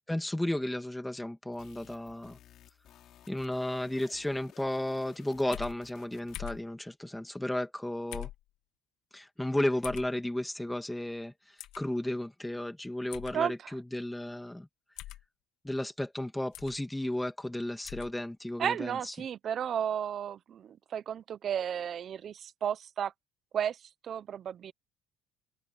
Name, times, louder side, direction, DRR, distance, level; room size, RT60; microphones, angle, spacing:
voice 1, 0.1-2.4 3.3-8.3 9.1-11.3 11.8-14.7 15.6-19.1, left 1 dB, 5° left, 2.1 m, -33 dB
sound 1, 1.5-6.6, left 11 dB, 50° left, 5.9 m, -57 dB
sound 2, 5.5-5.8 6.3-6.6 8.1-8.4 9.8-10.1 11.6-11.8 13.1-13.4 15.0-15.2 16.5-16.8 17.8-18.1, left 15 dB, 75° left, 1.9 m, -42 dB
voice 2, 18.6-23.1 23.5-23.8 24.0-24.7, right 9 dB, 40° right, 0.6 m, -33 dB
cardioid pair, 150°, 0 cm